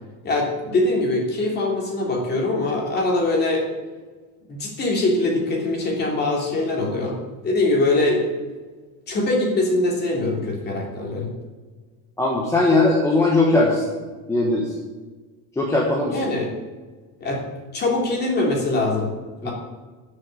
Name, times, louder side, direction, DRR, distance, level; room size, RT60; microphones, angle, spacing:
voice 1, 0.2-3.6 4.5-7.2 7.4-8.2 9.1-11.3 16.1-16.5 17.2-17.4 17.7-19.1 19.4-19.5, left 2 dB, 25° left, -1 dB, 2.9 m, -22 dB
voice 2, 12.2-13.9 14.3-14.7 15.6-16.2 19.4-19.5, left 2 dB, 5° left, -2 dB, 1.1 m, -19 dB
13.0 x 6.6 x 8.4 m, 1.4 s
cardioid pair, 175°, 40 cm